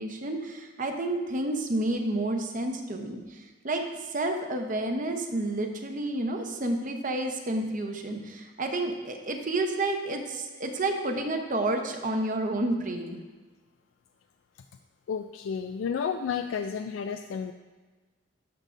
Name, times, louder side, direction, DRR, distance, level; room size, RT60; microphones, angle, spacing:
voice 1, 0.0-13.2, right 2 dB, 40° right, 4 dB, 0.8 m, -30 dB
voice 2, 15.1-17.5, left 6 dB, 80° left, 7 dB, 0.3 m, -31 dB
11.5 x 6.3 x 2.6 m, 1.3 s
head